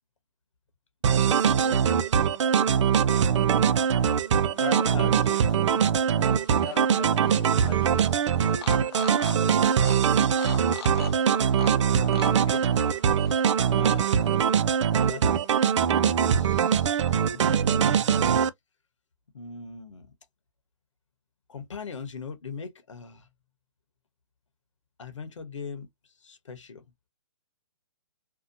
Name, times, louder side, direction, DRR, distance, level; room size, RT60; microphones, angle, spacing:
sound 1, 1.0-18.5, right 7 dB, 75° right, 0.4 m, -22 dB
voice 1, 1.1-1.8 4.6-5.2 12.4-12.6 13.7-14.5 15.0-15.5 16.3-17.5 19.3-20.1 21.5-23.3 25.0-25.9 26.2-26.8, left 5 dB, 85° left, 1.0 m, -40 dB
voice 2, 4.5-6.1 6.6-8.0, left 7 dB, 25° left, 0.8 m, -43 dB
sound 2, 6.2-14.4, left 9 dB, 55° left, 0.5 m, -43 dB
2.7 x 2.2 x 2.6 m
hypercardioid pair, 135°, 15 cm